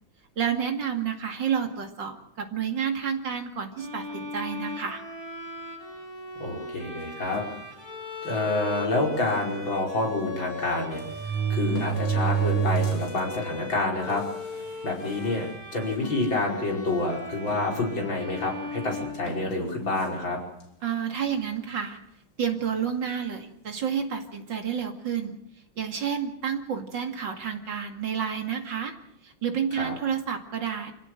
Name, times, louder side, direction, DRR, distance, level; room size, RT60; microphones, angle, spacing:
voice 1, 0.4-5.0 20.8-22.0 22.4-25.4 25.8-28.9 29.2-30.9, right 7 dB, 60° right, 4 dB, 2.9 m, -30 dB
Bowed string instrument, 3.8-19.8, left 3 dB, 10° left, 3.2 m, -39 dB
voice 2, 6.4-7.4 8.2-14.2 14.8-20.4 29.7-29.9, left 2 dB, 65° left, -1 dB, 5.9 m, -28 dB
sound 1, 7.3-7.6 8.4-8.5 8.8-8.9 10.2-10.3 10.9-13.2 13.7-13.8 14.6-14.7 15.0-15.4 16.0-16.2 17.5-18.3 19.3-19.5, right 7 dB, 85° left, 3.9 m, -28 dB
26.5 x 16.5 x 7.8 m, 0.78 s
omnidirectional pair, 2.2 m